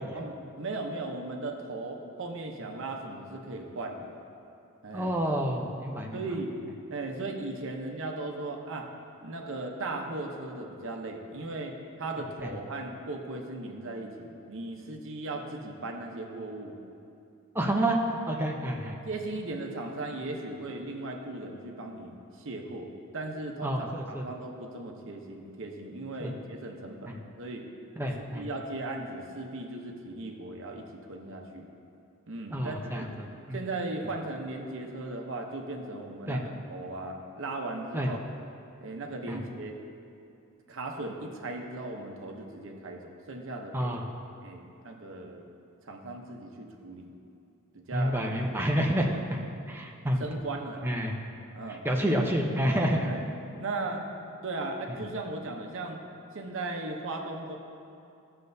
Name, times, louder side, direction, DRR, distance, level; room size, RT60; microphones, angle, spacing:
voice 1, 0.1-4.2 4.8-5.2 6.1-6.5 6.9-8.9 9.2-11.7 12.0-16.8 17.6-17.7 19.1-27.6 28.3-31.7 32.3-33.1 33.5-38.2 38.8-39.8 40.7-44.0 44.4-45.4 45.8-47.2 47.7-48.7 49.1-49.2 50.2-50.9 51.5-51.8 53.0-53.2 53.6-54.0 54.4-56.0 56.3-57.6, right 2 dB, 65° right, 2 dB, 0.8 m, -37 dB
voice 2, 4.9-6.2 17.5-19.0 23.6-24.2 26.2-26.3 27.1-27.2 28.0-28.4 32.5-33.6 36.3-36.4 37.9-38.1 39.3-39.4 43.7-44.0 47.9-49.4 49.7-50.2 50.8-51.1 51.8-53.1, equal, 10° right, 0 dB, 0.7 m, -29 dB
13.5 x 6.6 x 2.7 m, 2.6 s
head